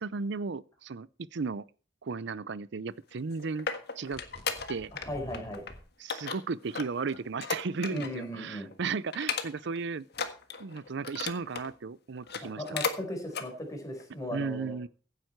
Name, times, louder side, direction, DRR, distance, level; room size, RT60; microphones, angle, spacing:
voice 1, 0.0-1.6 2.0-3.7 4.0-4.2 4.7-4.9 6.0-10.1 10.6-12.6 14.3-14.9, right 4 dB, 65° right, 0.5 m, -35 dB
sound 1, 3.1-5.1 5.3-5.7 6.1-8.2 8.6-8.7 9.1-9.8 10.1-11.7 12.2-13.0 13.3-13.5 14.0-14.1, left 5 dB, 60° left, 1.6 m, -35 dB
sound 2, 4.1-5.8, equal, 35° left, 3.6 m, -48 dB
voice 2, 5.0-5.6 7.9-8.7 12.4-14.7, equal, 20° left, 4.6 m, -37 dB
16.0 x 9.1 x 4.5 m
head